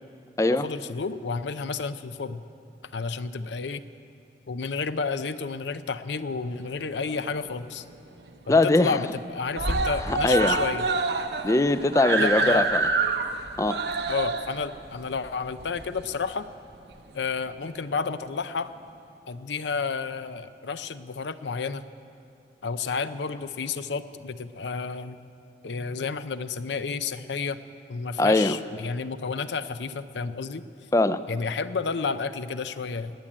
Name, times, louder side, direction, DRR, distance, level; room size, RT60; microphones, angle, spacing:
voice 1, 0.5-2.4 2.9-3.8 4.5-7.8 8.5-10.9 12.2-12.7 14.1-16.5 17.1-18.7 19.3-21.8 22.6-25.2 25.6-27.6 27.9-30.6 31.3-33.1, left 5 dB, 85° left, 12 dB, 0.6 m, -31 dB
Screaming, 6.6-7.6 7.9-8.0 8.3-8.4 8.7-9.2 9.5-16.3 17.2-17.3, right 3 dB, 70° right, 0.9 m, -28 dB
voice 2, 8.5-9.0 10.1-10.6 11.4-12.9 13.6-13.8 28.2-28.6 30.9-31.2, left 2 dB, 15° left, 13 dB, 0.4 m, -21 dB
19.5 x 7.5 x 9.8 m, 2.6 s
head